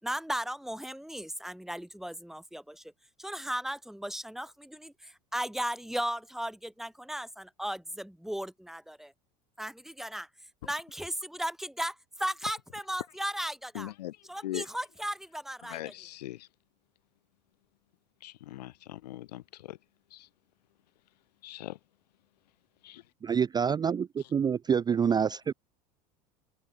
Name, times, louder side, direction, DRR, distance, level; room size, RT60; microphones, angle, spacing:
voice 1, 0.0-2.8 3.2-9.1 9.6-10.3 10.6-13.9 14.3-15.9, equal, ahead, 6.3 m, -36 dB
voice 2, 13.7-14.2 14.4-14.6 15.6-16.5 18.2-19.8 20.1-20.3 21.4-21.8 22.8-23.0, left 15 dB, 80° left, 1.2 m, -40 dB
voice 3, 23.2-25.5, right 7 dB, 20° right, 0.4 m, -27 dB
hypercardioid pair, 80°, 20 cm